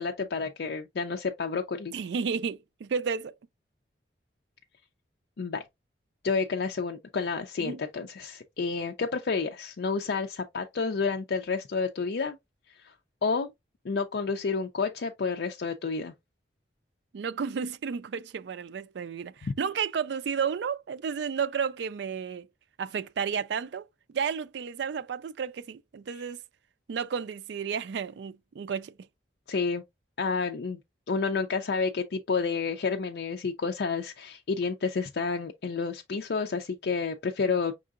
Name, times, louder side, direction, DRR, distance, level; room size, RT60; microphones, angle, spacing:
voice 1, 0.0-1.9 5.4-5.6 6.2-12.4 12.7-12.9 13.2-13.5 13.8-16.1 19.4-19.5 26.1-26.2 29.5-29.8 30.2-30.8 31.1-37.7, left 4 dB, 70° left, 0.4 m, -30 dB
voice 2, 1.9-3.3 7.6-7.8 17.1-22.5 22.8-23.9 24.1-26.4 26.9-28.9, right 6 dB, 75° right, 0.4 m, -32 dB
5.4 x 3.7 x 2.4 m
head